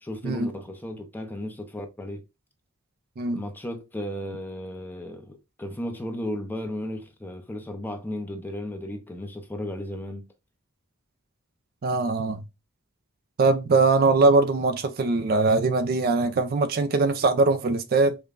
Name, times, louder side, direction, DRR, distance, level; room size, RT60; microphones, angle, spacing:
voice 1, 0.0-2.2 3.3-10.3, left 1 dB, 10° left, 0.6 m, -34 dB
voice 2, 11.8-12.4 13.4-18.2, right 3 dB, 45° right, 0.4 m, -21 dB
5.0 x 2.2 x 2.4 m
head